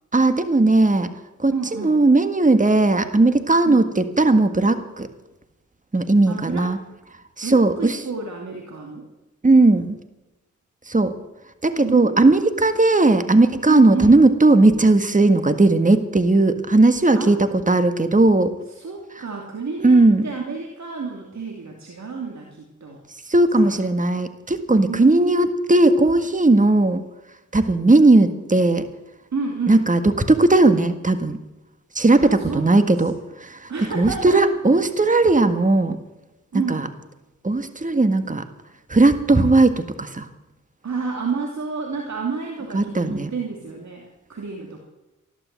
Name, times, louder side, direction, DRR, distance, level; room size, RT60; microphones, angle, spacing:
voice 1, 0.1-1.1 1.4-5.1 5.9-6.8 7.4-8.0 9.4-10.0 10.9-11.1 11.6-18.5 19.8-20.3 23.3-27.0 27.5-28.8 29.7-31.4 31.9-36.0 36.7-36.9 37.4-38.5 38.9-40.3 42.7-43.3, right 2 dB, 25° right, 9 dB, 1.7 m, -17 dB
voice 2, 1.5-2.0 3.7-3.8 6.3-6.8 7.4-9.1 11.8-12.7 13.7-14.1 17.1-17.3 18.8-23.0 23.5-23.8 24.9-25.8 29.3-29.9 32.1-33.2 33.7-34.5 36.5-36.9 40.8-44.8, right 4 dB, 60° right, 1 dB, 2.7 m, -30 dB
15.0 x 12.0 x 7.6 m, 1.0 s
cardioid pair, 50°, 32 cm